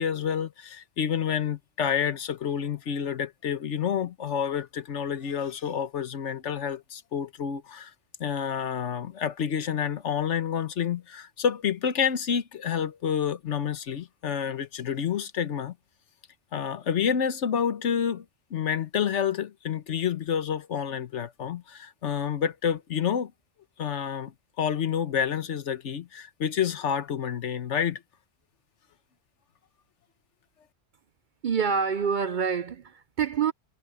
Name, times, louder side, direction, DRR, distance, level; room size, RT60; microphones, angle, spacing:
voice 1, 0.0-7.9 8.2-15.7 16.5-18.2 18.5-23.3 23.8-24.3 24.6-28.0, left 8 dB, 80° left, 1.3 m, -29 dB
voice 2, 31.4-33.5, right 6 dB, 55° right, 0.6 m, -26 dB
omnidirectional pair, 1.2 m